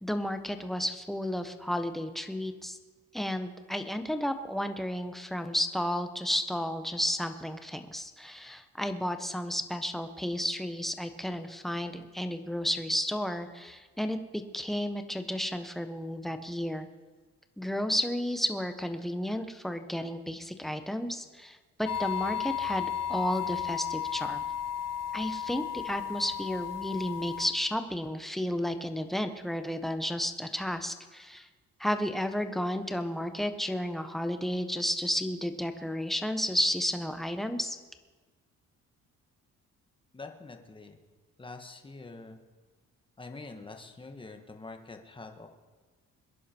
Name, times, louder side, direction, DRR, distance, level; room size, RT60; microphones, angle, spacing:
voice 1, 0.0-2.8 3.1-16.9 17.6-24.4 25.1-31.5 31.8-37.8, equal, ahead, 7 dB, 1.3 m, -32 dB
sound 1, 21.9-27.5, left 9 dB, 55° left, 1.2 m, -34 dB
voice 2, 40.1-41.0 41.4-42.4 43.2-45.5, left 3 dB, 15° left, 4 dB, 1.7 m, -45 dB
22.5 x 11.0 x 4.6 m, 1.3 s
cardioid pair, 90°, 30 cm